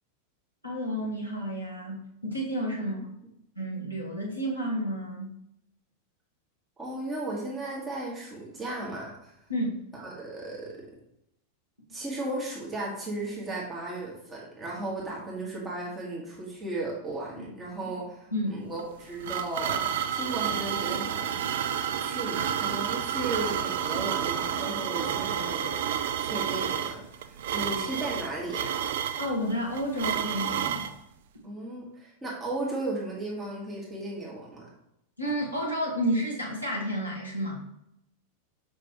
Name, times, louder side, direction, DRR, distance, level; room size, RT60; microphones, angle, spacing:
voice 1, 0.6-3.0 3.5-5.3 9.5-9.7 17.3-17.5 18.3-18.5 29.2-30.9 35.2-37.6, equal, 90° right, -3 dB, 1.5 m, -31 dB
voice 2, 6.8-9.4 9.9-10.9 11.9-21.3 21.7-28.8 31.4-34.7, right 2 dB, 15° right, -4 dB, 1.9 m, -35 dB
sound 1, 18.8-30.9, right 9 dB, 55° right, 0.4 m, -30 dB
5.8 x 5.2 x 3.1 m, 0.79 s
figure-of-eight pair, 90°, 0 cm